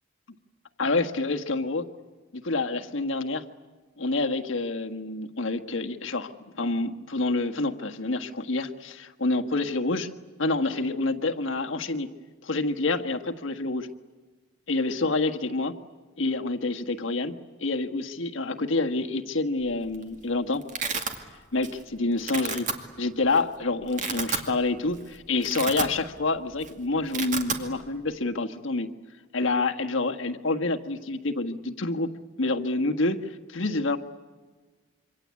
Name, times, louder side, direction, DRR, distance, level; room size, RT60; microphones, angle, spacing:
voice 1, 0.8-1.9 2.3-3.4 4.0-10.1 10.4-12.1 12.4-13.9 14.7-15.8 16.2-20.6 21.5-22.7 23.0-28.9 29.3-32.1 32.4-34.0, left 3 dB, 75° left, 4 dB, 1.5 m, -27 dB
Domestic sounds home sounds, 19.7-20.0 20.3-21.2 21.6-21.9 22.2-22.7 23.4-23.5 23.8-24.5 24.9-25.0 25.3-26.3 26.5-26.7 27.0-27.6, right 5 dB, 40° right, 2.3 m, -31 dB
27.0 x 25.0 x 8.4 m, 1.3 s
head